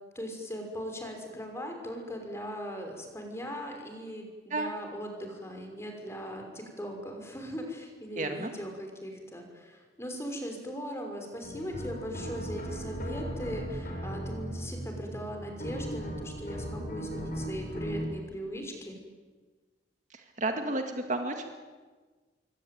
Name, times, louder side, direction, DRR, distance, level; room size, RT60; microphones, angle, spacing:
voice 1, 0.1-19.0, equal, 15° left, 3 dB, 5.6 m, -39 dB
voice 2, 8.2-8.6 20.1-21.6, right 2 dB, 40° right, 5 dB, 2.1 m, -32 dB
sound 1, 11.4-18.1, equal, 50° left, 5.9 m, -37 dB
26.5 x 24.0 x 9.4 m, 1.4 s
head